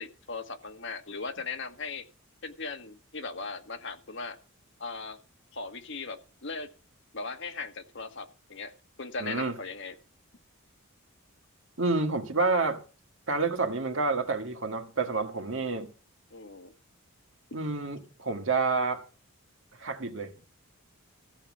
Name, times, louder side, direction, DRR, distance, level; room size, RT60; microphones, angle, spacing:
voice 1, 0.0-2.1 2.4-4.4 4.8-5.2 5.5-6.7 7.1-8.7 9.0-10.0 16.3-16.7, left 4 dB, 55° left, 1.3 m, -38 dB
voice 2, 9.2-9.6 11.8-12.8 13.3-15.9 17.5-19.0 19.8-20.3, right 3 dB, 60° right, 1.7 m, -29 dB
14.5 x 7.3 x 6.1 m
head